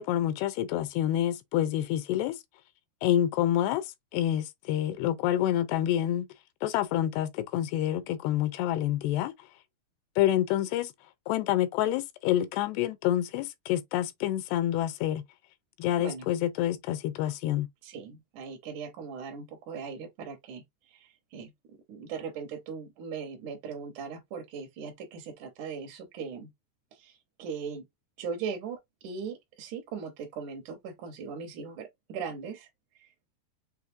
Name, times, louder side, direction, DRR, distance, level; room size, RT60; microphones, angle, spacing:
voice 1, 0.0-2.4 3.0-6.3 6.6-9.5 10.2-10.9 11.3-15.2 15.8-17.7, left 12 dB, 90° left, 2.8 m, -28 dB
voice 2, 17.8-21.5 21.9-26.5 26.9-27.8 28.2-33.4, right 6 dB, 70° right, 2.0 m, -39 dB
6.9 x 2.6 x 2.6 m
omnidirectional pair, 4.7 m